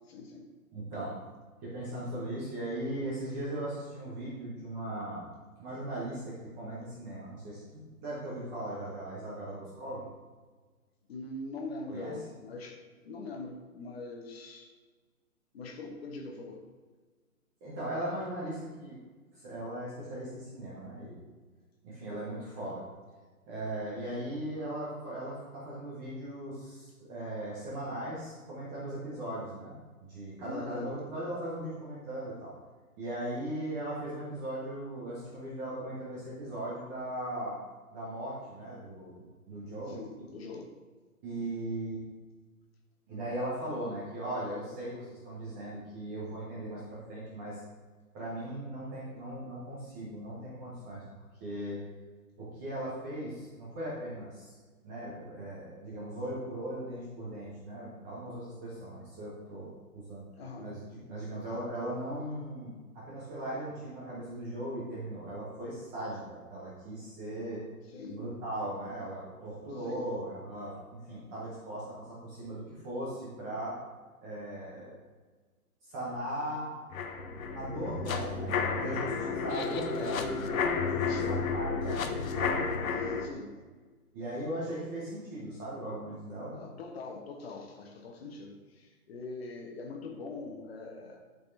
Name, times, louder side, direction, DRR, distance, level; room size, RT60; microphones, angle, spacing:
voice 1, 0.1-0.5 11.1-14.7 15.5-16.7 30.4-30.9 39.9-40.7 60.4-60.8 67.9-68.3 69.8-70.1 81.0-81.4 83.0-83.5 86.5-91.2, left 3 dB, 40° left, 3 dB, 1.1 m, -43 dB
voice 2, 0.7-1.1 1.6-5.3 5.6-10.0 11.9-12.2 17.6-18.9 19.3-21.2 21.8-22.8 23.5-32.5 33.0-37.6 37.9-39.2 39.5-40.0 41.2-42.0 43.1-47.6 48.1-51.8 52.4-54.5 54.8-60.3 60.6-67.6 68.1-73.8 74.2-75.0 75.8-76.7 77.5-82.6 84.1-86.5, right 1 dB, 10° right, -7 dB, 0.6 m, -38 dB
sound 1, 76.9-83.3, left 5 dB, 60° left, 0.8 m, -32 dB
10.5 x 4.0 x 2.6 m, 1.4 s
hypercardioid pair, 145°, 45 cm